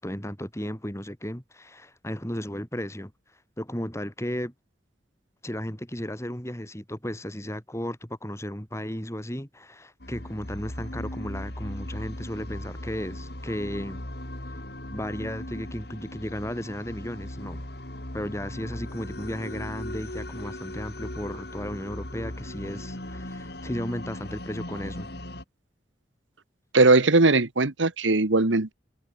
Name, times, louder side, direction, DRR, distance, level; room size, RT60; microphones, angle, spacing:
voice 1, 0.0-3.1 3.6-4.5 5.4-14.0 14.9-17.6 18.1-25.1, equal, 15° left, 4.7 m, -34 dB
sound 1, 10.0-25.4, left 1 dB, 55° left, 4.0 m, -38 dB
voice 2, 26.7-28.7, right 3 dB, 85° right, 1.5 m, -19 dB
head